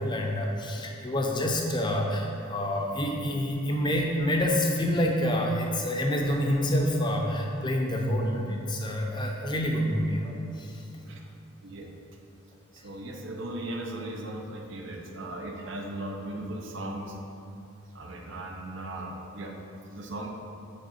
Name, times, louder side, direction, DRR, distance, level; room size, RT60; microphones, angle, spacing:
voice 1, 0.0-11.0, equal, 20° left, 1 dB, 0.6 m, -27 dB
voice 2, 12.7-17.2 17.9-20.3, right 1 dB, 60° right, 2 dB, 0.7 m, -37 dB
8.5 x 3.8 x 4.2 m, 2.6 s
head